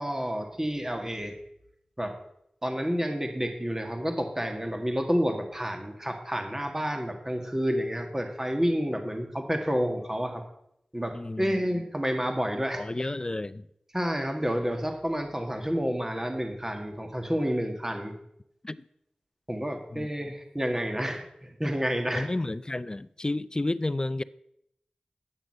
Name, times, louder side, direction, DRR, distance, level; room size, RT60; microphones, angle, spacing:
voice 1, 0.0-1.4 2.0-2.1 2.6-10.4 10.9-13.1 13.9-18.1 19.5-22.3, equal, 15° right, 1.8 m, -29 dB
voice 2, 11.1-11.6 12.8-13.7 18.6-18.8 19.9-20.1 22.1-24.2, left 2 dB, 30° left, 0.4 m, -31 dB
9.8 x 6.5 x 7.6 m
cardioid pair, 45°, 3 cm